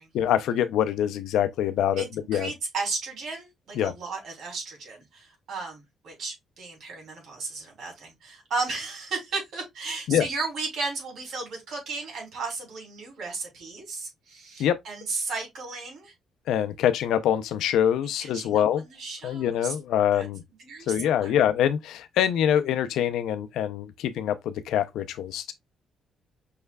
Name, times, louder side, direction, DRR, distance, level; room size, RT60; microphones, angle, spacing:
voice 1, 0.1-2.5 3.7-3.9 10.1-10.2 14.6-14.8 16.5-18.8 19.2-20.4 20.9-25.5, left 10 dB, 85° left, 0.5 m, -25 dB
voice 2, 2.0-16.1 18.2-19.7 20.1-20.3 20.6-21.4, right 3 dB, 65° right, 2.8 m, -34 dB
5.6 x 3.2 x 2.3 m
cardioid pair, 90°, 0 cm